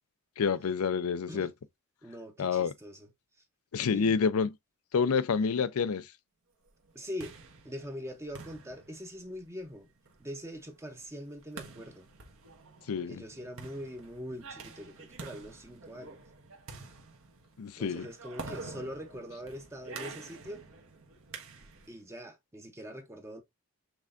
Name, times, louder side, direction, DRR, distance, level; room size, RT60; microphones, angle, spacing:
voice 1, 0.4-1.5 2.4-2.7 3.7-4.5 4.9-6.1 12.9-13.2 17.6-18.1, left 6 dB, 85° left, 0.5 m, -28 dB
voice 2, 2.0-3.1 3.9-4.1 6.9-7.4 7.6-9.9 10.2-12.1 12.9-16.2 17.8-20.6 21.9-23.4, equal, 15° right, 0.7 m, -43 dB
sound 1, 6.8-22.0, right 3 dB, 70° right, 1.2 m, -48 dB
6.0 x 3.4 x 2.5 m
head